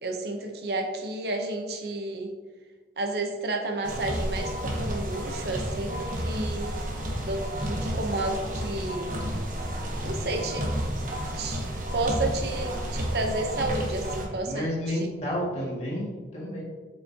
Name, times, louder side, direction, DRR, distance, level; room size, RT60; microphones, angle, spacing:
voice 1, 0.0-2.4 3.0-6.7 7.2-9.2 10.0-10.7 11.4-11.7 11.9-15.1, right 2 dB, 60° right, 3 dB, 0.8 m, -31 dB
sound 1, 3.8-14.3, equal, 45° right, 1.1 m, -31 dB
voice 2, 14.5-16.6, equal, 35° left, -5 dB, 2.1 m, -30 dB
8.0 x 5.4 x 2.8 m, 1.4 s
head